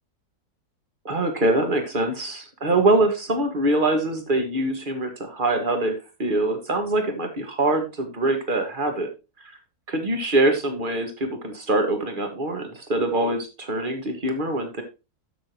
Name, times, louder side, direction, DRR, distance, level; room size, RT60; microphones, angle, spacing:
voice 1, 1.1-9.1 9.9-14.8, right 2 dB, 30° right, 5 dB, 1.9 m, -24 dB
12.5 x 6.4 x 3.0 m, 0.27 s
omnidirectional pair, 1.7 m